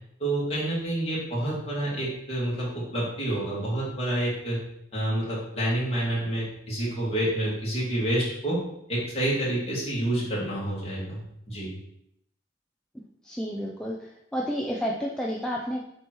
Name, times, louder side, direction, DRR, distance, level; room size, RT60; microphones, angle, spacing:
voice 1, 0.2-4.6 4.9-8.6 8.9-11.2 11.5-11.7, right 1 dB, 30° left, -6 dB, 2.4 m, -28 dB
voice 2, 13.2-14.0 14.3-15.8, equal, 5° left, -2 dB, 0.5 m, -30 dB
7.6 x 3.1 x 4.5 m, 0.77 s
head